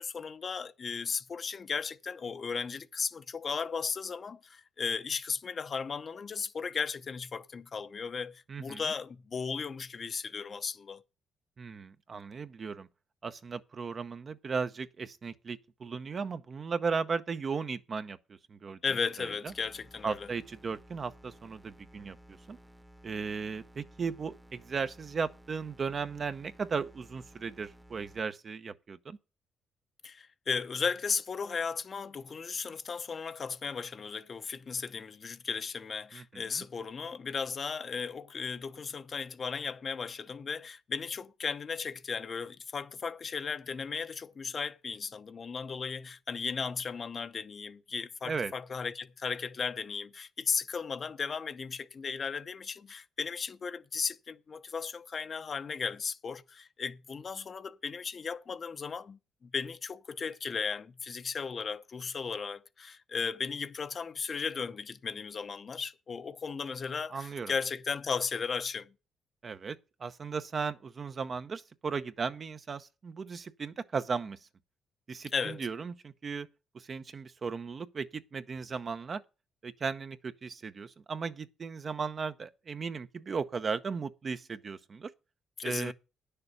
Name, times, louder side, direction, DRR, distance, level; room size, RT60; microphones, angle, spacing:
voice 1, 0.0-11.0 18.8-20.3 30.0-68.9 75.3-75.7 85.6-85.9, left 5 dB, 45° left, 0.7 m, -36 dB
voice 2, 8.5-8.9 11.6-12.9 13.2-18.8 19.2-19.5 20.0-22.6 23.0-29.2 36.1-36.6 48.2-48.5 67.1-67.5 69.4-74.4 75.1-76.5 76.7-79.2 79.6-85.1 85.6-85.9, right 5 dB, 40° right, 0.8 m, -36 dB
sound 1, 19.5-28.2, right 1 dB, 5° right, 1.0 m, -56 dB
9.9 x 6.7 x 6.7 m
cardioid pair, 90°, 0 cm